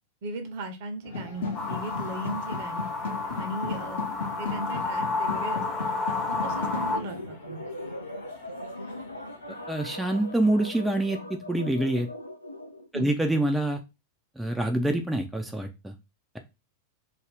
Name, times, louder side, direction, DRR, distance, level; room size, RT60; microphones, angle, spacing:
voice 1, 0.2-2.9 3.4-4.1 4.4-5.9 6.3-7.6 12.9-13.1, right 2 dB, 50° right, 6 dB, 0.6 m, -37 dB
sound 1, 1.0-9.9, left 4 dB, 65° left, 0.7 m, -37 dB
sound 2, 1.5-7.0, left 3 dB, 20° left, 0.7 m, -31 dB
sound 3, 6.4-12.9, left 1 dB, 90° left, 0.3 m, -40 dB
voice 2, 9.5-12.1 12.9-13.8 14.4-15.9, right 1 dB, 5° right, 4 dB, 0.3 m, -26 dB
2.4 x 2.1 x 3.3 m, 0.25 s
figure-of-eight pair, 90°, 0 cm